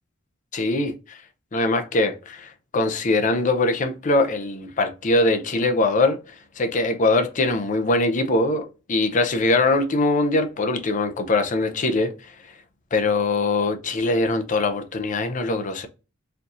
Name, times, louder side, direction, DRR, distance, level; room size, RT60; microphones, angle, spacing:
voice 1, 0.5-1.2 1.5-6.2 6.6-12.1 12.9-15.9, left 2 dB, 40° left, 0.6 m, -22 dB
4.3 x 2.7 x 2.5 m
head